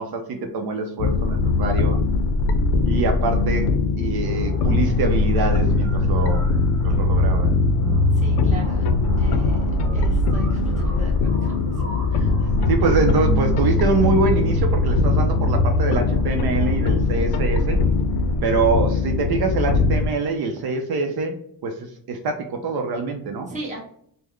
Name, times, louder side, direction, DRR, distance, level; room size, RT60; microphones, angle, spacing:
voice 1, 0.0-2.0 2.8-6.5 6.8-7.5 12.7-17.8 18.4-21.4 21.6-23.5, right 3 dB, 70° right, 4 dB, 0.6 m, -24 dB
sound 1, 1.0-20.1, left 3 dB, 90° left, 0.5 m, -20 dB
sound 2, 4.2-18.2, left 1 dB, 40° right, 1.3 m, -39 dB
voice 2, 8.1-8.8 9.2-11.8 12.1-12.3 23.5-23.8, right 2 dB, 20° right, -3 dB, 1.0 m, -37 dB
3.7 x 2.1 x 3.1 m, 0.64 s
cardioid pair, 155°, 38 cm